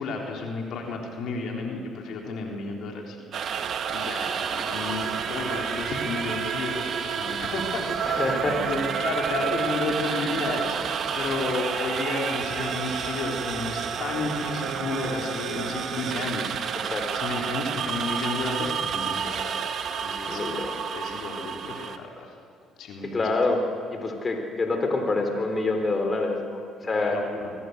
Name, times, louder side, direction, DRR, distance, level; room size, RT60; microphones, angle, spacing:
voice 1, 0.0-8.3 8.6-10.8 11.1-16.9 17.1-22.3 22.8-23.2 26.8-27.5, left 3 dB, 70° left, 0 dB, 3.9 m, -32 dB
sound 1, 3.3-22.0, right 7 dB, 60° right, 1.7 m, -30 dB
sound 2, 3.9-13.1, right 4 dB, 40° right, 4.7 m, -39 dB
voice 2, 8.1-8.6 16.8-17.0 20.1-20.8 23.0-23.6 23.9-27.2, left 3 dB, 35° left, 4 dB, 3.9 m, -26 dB
25.0 x 18.5 x 8.2 m, 2.4 s
supercardioid pair, 65°, 0 cm